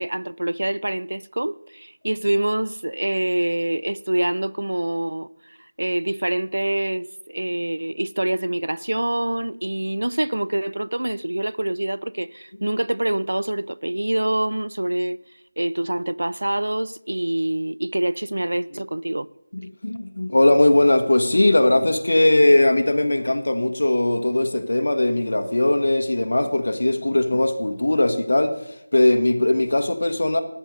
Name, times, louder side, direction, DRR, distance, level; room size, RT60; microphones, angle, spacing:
voice 1, 0.0-15.2 15.6-19.3, right 1 dB, 90° right, 0.4 m, -25 dB
voice 2, 19.5-30.4, left 1 dB, 55° left, 1.2 m, -19 dB
13.5 x 9.3 x 5.2 m
figure-of-eight pair, 180°, 0 cm